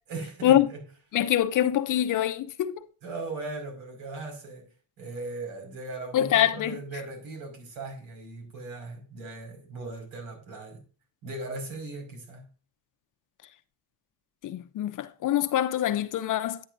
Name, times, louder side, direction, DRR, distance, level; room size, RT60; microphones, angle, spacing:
voice 1, 0.1-0.8 3.0-4.7 5.0-10.8 11.2-12.5, right 3 dB, 85° right, 5.4 m, -38 dB
voice 2, 1.1-2.8 6.1-6.7 14.4-16.6, left 12 dB, 40° left, 0.7 m, -24 dB
10.0 x 9.2 x 2.6 m
cardioid pair, 130°, 46 cm